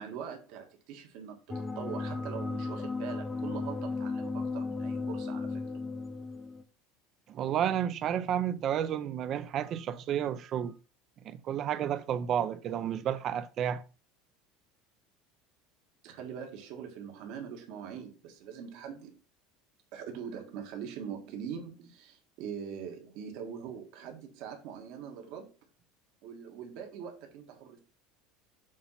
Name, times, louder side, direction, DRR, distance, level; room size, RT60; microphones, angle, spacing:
voice 1, 0.0-5.6 16.0-19.2 19.9-25.5 26.2-27.8, right 7 dB, 65° right, 1.5 m, -42 dB
sound 1, 1.5-6.6, left 3 dB, 15° left, 0.6 m, -35 dB
voice 2, 7.3-10.7 11.2-13.8, right 9 dB, 40° right, 0.5 m, -31 dB
7.4 x 2.9 x 5.6 m
supercardioid pair, 135°, 0 cm